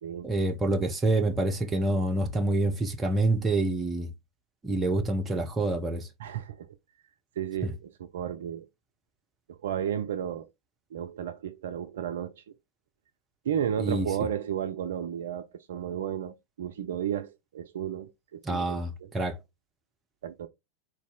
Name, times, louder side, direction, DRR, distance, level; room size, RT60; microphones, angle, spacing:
voice 1, 0.2-4.1 4.6-6.1 7.6-7.7 13.8-14.1 18.4-19.4, right 2 dB, 15° right, 0.8 m, -27 dB
voice 2, 6.2-6.7 7.4-8.7 9.6-10.5 10.9-12.4 13.5-19.1 20.2-20.5, right 9 dB, 60° right, 0.4 m, -33 dB
4.1 x 2.6 x 3.7 m
figure-of-eight pair, 90°, 0 cm